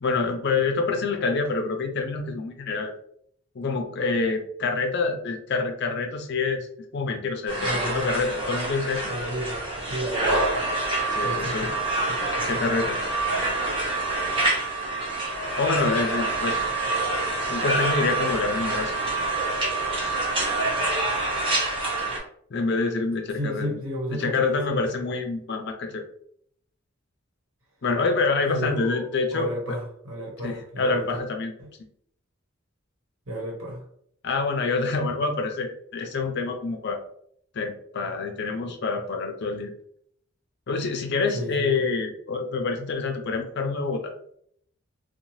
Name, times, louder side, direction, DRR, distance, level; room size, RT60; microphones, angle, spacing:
voice 1, 0.0-2.9 3.5-6.7 6.9-9.1 11.1-11.7 12.4-13.0 15.6-16.6 17.5-18.9 21.8-21.9 22.5-23.8 24.1-26.0 27.8-29.8 30.4-31.5 34.2-37.0 37.5-39.7 40.7-44.1, left 4 dB, 55° left, 5 dB, 0.5 m, -27 dB
sound 1, 7.5-22.2, right 2 dB, 25° right, 0.9 m, -26 dB
voice 2, 7.6-8.1 9.1-9.6 9.9-10.6 11.2-11.7 12.1-12.2 23.4-24.9 28.5-31.1 31.6-31.7 33.3-33.8 41.3-41.9, equal, 85° right, -1 dB, 1.0 m, -33 dB
2.7 x 2.2 x 3.0 m, 0.66 s
head